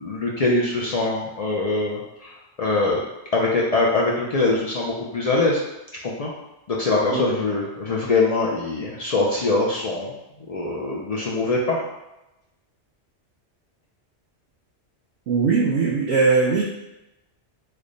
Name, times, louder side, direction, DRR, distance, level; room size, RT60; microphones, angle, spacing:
voice 1, 0.0-3.0 3.3-5.6 6.0-6.3 6.7-10.1 10.5-11.8, left 2 dB, 55° left, -4 dB, 0.4 m, -23 dB
voice 2, 15.3-16.6, right 4 dB, 70° right, -4 dB, 0.8 m, -20 dB
3.3 x 2.1 x 3.7 m, 0.94 s
omnidirectional pair, 1.2 m